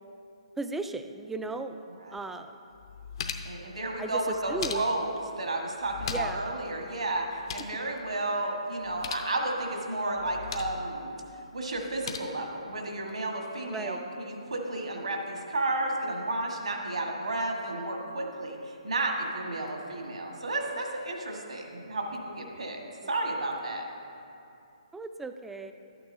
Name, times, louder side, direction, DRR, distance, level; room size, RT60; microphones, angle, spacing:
voice 1, 0.6-1.8 2.1-2.5 4.0-4.2 4.5-4.9 6.1-6.4 13.6-14.0 24.9-25.7, right 3 dB, 5° right, 8 dB, 0.3 m, -36 dB
voice 2, 1.9-2.2 3.4-11.2 11.5-22.8 23.1-23.8, right 2 dB, 75° right, 1 dB, 1.6 m, -32 dB
sound 1, 2.2-2.3 2.7-3.6 4.3-5.2 5.8-6.5 6.7-6.8 7.2-7.8 8.8-9.3 10.2-10.8 11.7-12.2, left 6 dB, 50° left, 0.6 m, -38 dB
12.0 x 8.8 x 2.7 m, 2.7 s
figure-of-eight pair, 135°, 4 cm